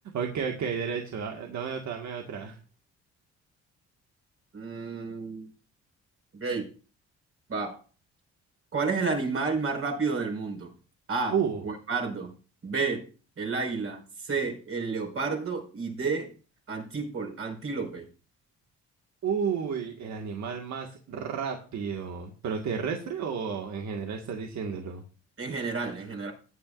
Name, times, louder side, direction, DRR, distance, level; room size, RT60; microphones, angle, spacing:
voice 1, 0.1-2.6 11.3-11.6 19.2-25.0, right 6 dB, 65° right, 2 dB, 1.9 m, -32 dB
voice 2, 4.5-5.4 6.3-6.7 7.5-7.8 8.7-10.7 11.1-11.4 11.6-12.3 12.6-13.1 13.4-16.3 16.7-18.1 25.4-26.3, right 4 dB, 50° right, 1 dB, 5.4 m, -31 dB
18.0 x 9.5 x 2.6 m, 0.36 s
cardioid pair, 90°, 30 cm